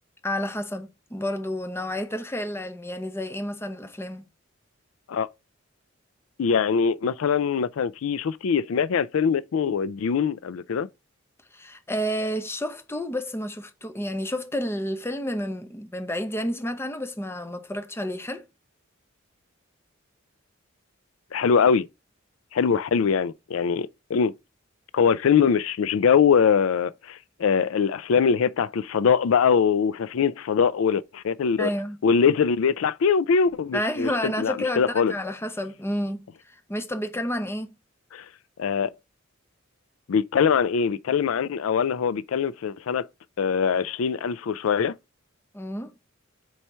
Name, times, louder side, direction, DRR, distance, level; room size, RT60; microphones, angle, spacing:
voice 1, 0.2-4.2 11.5-18.5 31.6-32.0 33.7-37.7 45.5-45.9, equal, 10° left, 0.8 m, -30 dB
voice 2, 6.4-10.9 21.3-21.9 22.5-24.3 24.9-31.7 32.0-35.1 38.1-38.3 38.6-38.9 40.1-43.1 43.4-44.9, left 6 dB, 90° left, 0.4 m, -22 dB
4.7 x 4.4 x 5.4 m
head